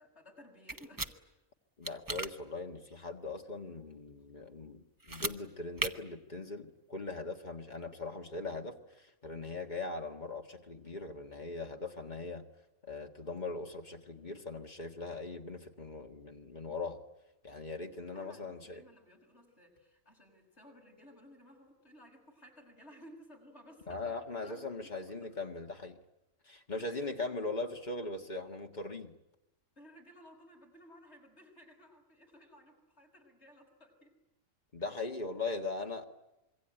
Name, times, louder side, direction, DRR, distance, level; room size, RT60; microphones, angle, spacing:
voice 1, 0.0-1.4 18.1-25.3 26.8-27.3 29.8-34.2, equal, 55° left, 1 dB, 6.2 m, -57 dB
sound 1, 0.7-1.1 1.8-2.3 5.0-5.4 5.8-5.9, right 2 dB, 20° right, 0.8 m, -35 dB
voice 2, 1.8-12.5 12.8-17.0 17.4-18.8 23.9-26.0 26.4-29.1 34.7-36.0, left 3 dB, 35° left, 3 dB, 1.9 m, -40 dB
26.0 x 23.0 x 9.1 m, 0.96 s
omnidirectional pair, 1.4 m